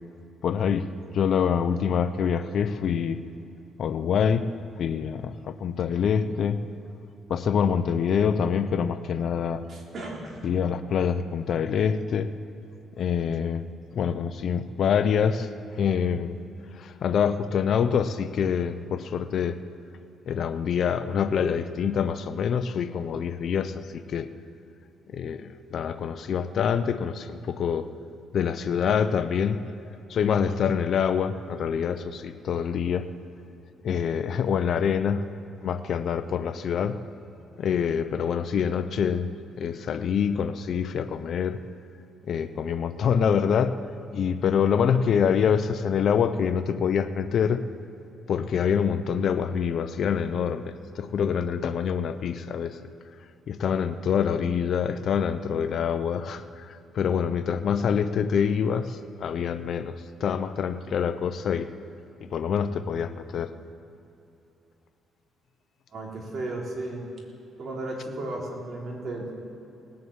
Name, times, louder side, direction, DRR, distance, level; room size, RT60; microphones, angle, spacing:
voice 1, 0.4-0.9 1.1-3.2 3.8-4.5 4.8-6.6 7.3-9.6 10.4-12.3 13.0-13.6 13.9-15.5 15.8-16.4 16.7-19.6 20.3-24.3 25.1-27.9 28.3-29.6 30.1-33.1 33.8-35.3 35.6-37.0 37.6-39.3 39.6-41.6 42.2-43.8 44.1-47.6 48.3-52.8 53.5-61.7 62.2-63.5, left 7 dB, 60° left, 11 dB, 0.7 m, -26 dB
voice 2, 9.7-10.5 65.9-67.1 67.6-69.3, right 2 dB, 50° right, -1 dB, 3.6 m, -34 dB
19.0 x 7.7 x 8.7 m, 2.8 s
cardioid pair, 105°, 0 cm